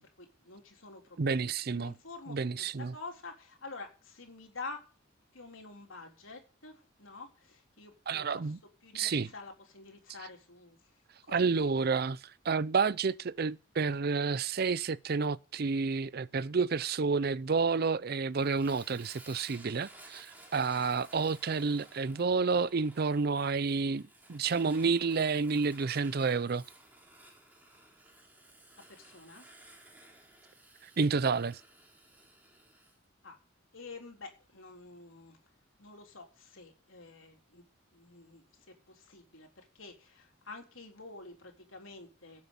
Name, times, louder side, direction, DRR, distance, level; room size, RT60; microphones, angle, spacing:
voice 1, 0.2-2.4 2.9-4.8 5.3-8.5 8.8-10.8 11.2-11.3 28.9-29.5 33.2-33.4 33.7-35.4 35.8-37.6 37.9-42.4, left 3 dB, 85° left, 3.7 m, -48 dB
voice 2, 1.2-1.9 2.3-2.9 8.1-8.6 8.9-9.3 11.3-24.0 24.3-26.6 31.0-31.6, right 4 dB, 50° right, 0.5 m, -30 dB
Fire, 18.3-33.0, right 1 dB, 10° right, 3.4 m, -56 dB
17.0 x 7.6 x 5.4 m
head